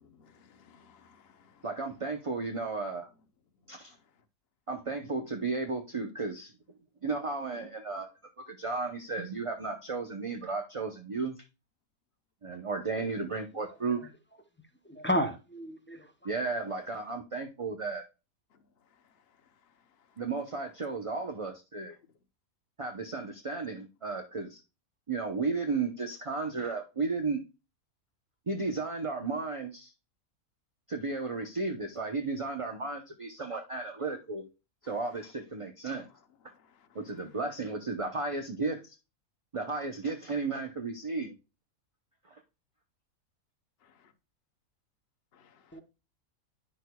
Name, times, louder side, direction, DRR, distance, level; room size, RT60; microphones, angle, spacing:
voice 1, 0.0-1.6 45.3-45.8, left 6 dB, 50° left, 1.0 m, -61 dB
voice 2, 1.6-3.1 3.7-3.9 4.7-6.5 7.0-8.1 8.5-11.4 12.4-14.0 16.2-18.0 20.2-21.9 22.8-24.6 25.1-27.4 28.5-29.9 30.9-34.5 34.8-36.1 36.9-39.0 39.5-41.3 42.3-42.4, right 4 dB, 35° right, 0.6 m, -34 dB
voice 3, 15.0-16.1 45.7-45.8, equal, 15° left, 0.4 m, -31 dB
9.8 x 6.2 x 2.2 m
omnidirectional pair, 1.5 m